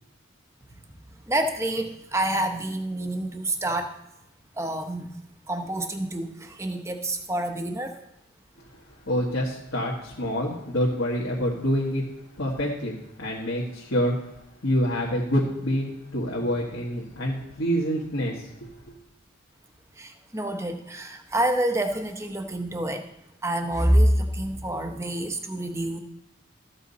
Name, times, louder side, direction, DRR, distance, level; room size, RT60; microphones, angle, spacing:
voice 1, 1.1-4.0 4.6-5.2 5.5-8.0 20.0-23.1 23.4-26.0, right 1 dB, 15° right, 6 dB, 0.8 m, -27 dB
voice 2, 8.6-12.0 12.4-14.2 14.6-18.9, equal, 60° left, -4 dB, 1.7 m, -27 dB
13.5 x 7.6 x 4.1 m, 0.86 s
head